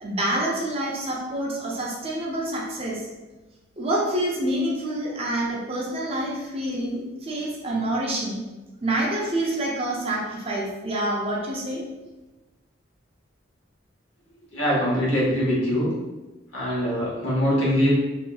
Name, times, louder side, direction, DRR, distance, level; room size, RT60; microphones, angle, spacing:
voice 1, 0.0-3.0 3.8-8.4 8.8-11.8, right 1 dB, 30° right, -4 dB, 0.5 m, -27 dB
voice 2, 14.5-15.9 16.5-17.9, equal, 80° left, -7 dB, 1.3 m, -23 dB
2.7 x 2.6 x 2.3 m, 1.1 s
head